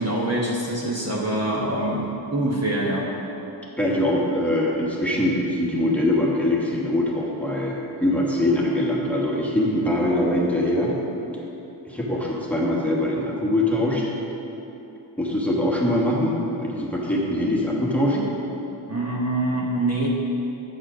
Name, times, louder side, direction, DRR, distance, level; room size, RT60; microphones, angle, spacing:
voice 1, 0.0-3.1 18.9-20.1, right 1 dB, 35° right, -3 dB, 1.1 m, -25 dB
voice 2, 3.8-11.0 11.8-14.1 15.2-18.3, left 1 dB, 5° left, -4 dB, 1.3 m, -23 dB
8.3 x 4.3 x 6.1 m, 2.9 s
wide cardioid pair, 65°, 47 cm